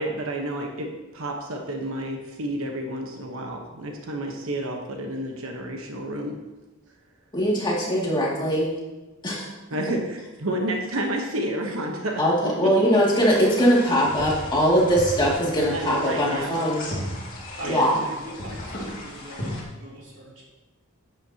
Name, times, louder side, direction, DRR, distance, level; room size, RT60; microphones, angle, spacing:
voice 1, 0.0-6.4 9.7-12.2 12.6-13.0 15.7-16.6 17.6-17.9, right 1 dB, 85° right, 2 dB, 1.1 m, -30 dB
voice 2, 7.3-8.7 9.2-9.5 12.2-16.9 17.7-18.0, equal, 20° left, -5 dB, 2.3 m, -21 dB
sound 1, 13.1-19.6, left 1 dB, 40° left, 2.4 m, -36 dB
voice 3, 17.5-20.6, equal, 60° right, -5 dB, 3.2 m, -40 dB
10.5 x 9.1 x 2.9 m, 1.1 s
head